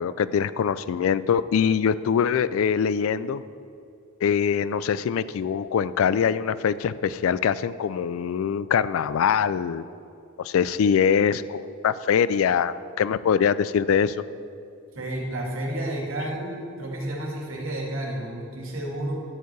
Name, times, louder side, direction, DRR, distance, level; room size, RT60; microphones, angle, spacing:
voice 1, 0.0-3.4 4.2-9.8 10.4-14.2, left 7 dB, 80° left, 16 dB, 0.3 m, -23 dB
voice 2, 14.9-19.2, right 1 dB, 75° right, -2 dB, 2.3 m, -31 dB
12.0 x 4.7 x 8.1 m, 2.6 s
head